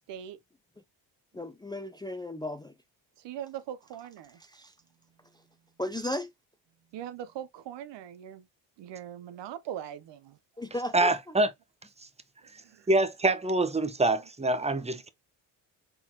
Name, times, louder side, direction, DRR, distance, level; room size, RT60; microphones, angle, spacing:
voice 1, 1.3-2.7 4.4-4.7 5.8-6.3 10.6-11.1, left 1 dB, 10° left, 0.5 m, -35 dB
voice 2, 3.2-4.4 6.9-8.4 8.8-10.4 12.7-12.9, right 10 dB, 60° right, 0.7 m, -40 dB
voice 3, 10.9-11.5 12.9-15.1, right 2 dB, 15° right, 0.8 m, -25 dB
4.2 x 4.0 x 2.8 m
supercardioid pair, 70°, 48 cm